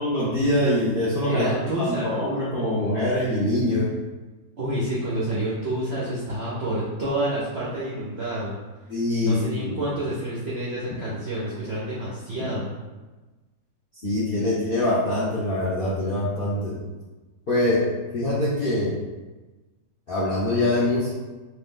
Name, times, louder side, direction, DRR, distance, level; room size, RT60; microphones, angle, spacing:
voice 1, 0.0-1.5 1.8-3.9 8.9-9.8 14.0-16.8 17.5-17.8 18.1-18.9 20.1-21.1, left 1 dB, 65° left, -9 dB, 0.5 m, -24 dB
voice 2, 1.2-2.3 4.6-8.5 9.2-12.7, right 1 dB, 65° right, -7 dB, 0.6 m, -28 dB
3.0 x 2.7 x 3.7 m, 1.2 s
omnidirectional pair, 1.9 m